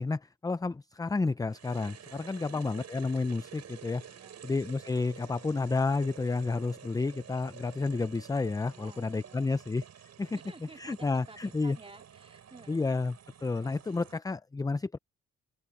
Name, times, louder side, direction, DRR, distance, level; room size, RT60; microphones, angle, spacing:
voice 1, 0.0-4.0 4.4-9.8 10.2-10.4 10.8-11.8 12.7-13.2 13.4-15.0, left 3 dB, 10° left, 0.5 m, -31 dB
sound 1, 1.5-14.2, right 9 dB, 60° right, 6.3 m, -51 dB
voice 2, 2.4-2.7 4.1-4.6 8.7-9.7 10.3-12.9, right 3 dB, 20° right, 3.4 m, -53 dB
open air
cardioid pair, 90°, 30 cm